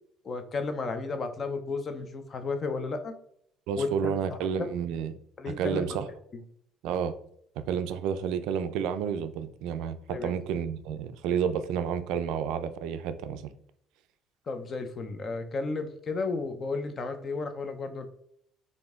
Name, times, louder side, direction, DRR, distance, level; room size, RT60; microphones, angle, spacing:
voice 1, 0.2-3.1 3.8-4.7 5.4-6.0 10.1-10.3 14.5-18.1, left 3 dB, 30° left, 8 dB, 0.5 m, -33 dB
voice 2, 3.7-5.1 5.5-6.1 6.8-7.1 7.6-13.5, right 7 dB, 75° right, 11 dB, 0.4 m, -30 dB
5.0 x 2.6 x 3.5 m, 0.67 s
cardioid pair, 160°, 0 cm